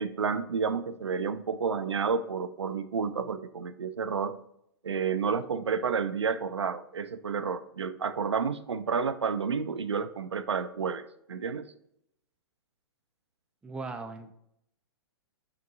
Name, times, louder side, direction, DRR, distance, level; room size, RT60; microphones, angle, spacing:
voice 1, 0.0-4.4 4.8-11.7, right 6 dB, 80° right, 12 dB, 0.5 m, -30 dB
voice 2, 13.6-14.3, right 3 dB, 5° right, 6 dB, 0.5 m, -38 dB
6.7 x 5.9 x 2.6 m, 0.76 s
figure-of-eight pair, 110°, 14 cm